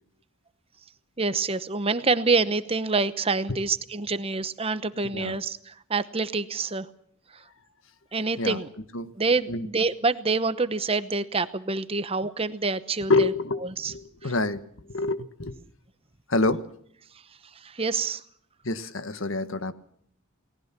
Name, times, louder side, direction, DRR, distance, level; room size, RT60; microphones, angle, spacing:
voice 1, 1.2-6.9 7.3-7.4 8.1-8.7 9.2-13.3 13.8-13.9 14.2-14.3 17.6-18.2, right 4 dB, 25° right, 13 dB, 0.9 m, -26 dB
voice 2, 13.1-15.6 16.3-16.6 18.6-19.7, left 2 dB, 65° left, 12 dB, 1.5 m, -27 dB
29.0 x 19.0 x 6.0 m, 0.64 s
head